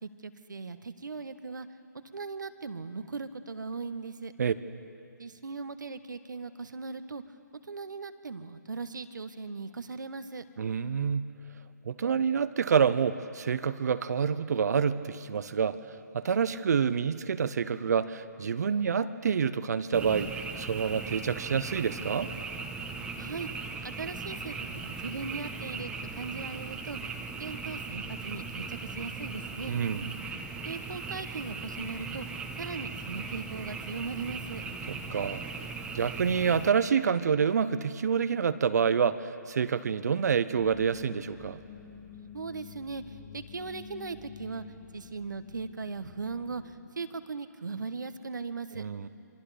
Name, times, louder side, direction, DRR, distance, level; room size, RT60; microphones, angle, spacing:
voice 1, 0.0-1.7 2.1-4.3 5.2-7.2 7.6-10.4 23.2-23.5 23.8-27.0 27.3-29.7 30.6-32.3 32.6-34.6 42.3-44.6 44.9-48.9, right 4 dB, 75° right, 11 dB, 1.3 m, -39 dB
voice 2, 10.6-11.3 11.9-20.3 20.6-22.3 29.7-30.1 34.9-35.4 35.9-41.6 48.7-49.1, right 6 dB, 60° right, 13 dB, 0.8 m, -27 dB
Frog, 19.9-36.7, right 4 dB, 10° right, 1.2 m, -38 dB
sound 1, 40.5-46.8, left 5 dB, 35° left, 4.6 m, -49 dB
27.0 x 24.0 x 5.1 m, 2.6 s
figure-of-eight pair, 145°, 10 cm